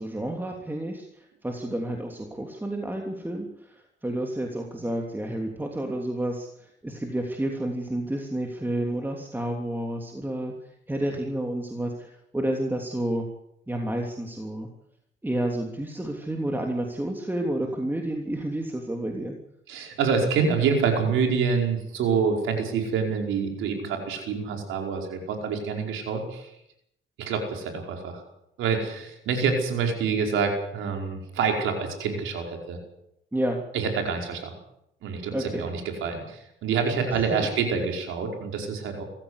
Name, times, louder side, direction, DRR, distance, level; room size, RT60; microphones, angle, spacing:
voice 1, 0.0-10.5 10.9-13.3 13.7-14.7 15.2-19.3 33.3-33.6 35.3-35.7 37.1-37.2, right 1 dB, 10° right, 2 dB, 3.1 m, -30 dB
voice 2, 19.7-26.5 27.2-28.2 28.6-32.8 33.7-34.5 35.0-39.0, right 5 dB, 85° right, 3 dB, 5.1 m, -27 dB
24.0 x 15.0 x 8.2 m, 0.77 s
cardioid pair, 90°, 20 cm